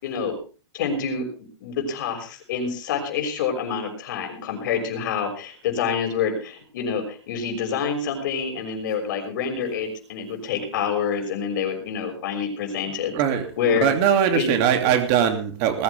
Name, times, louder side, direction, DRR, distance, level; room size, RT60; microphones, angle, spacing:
voice 1, 0.0-0.4 0.7-13.1 13.6-13.9 14.3-14.6, left 6 dB, 45° left, 4 dB, 6.0 m, -27 dB
voice 2, 13.1-13.5 13.8-15.8, right 8 dB, 30° right, 7 dB, 2.8 m, -21 dB
20.0 x 15.0 x 3.5 m, 0.37 s
hypercardioid pair, 170°, 14 cm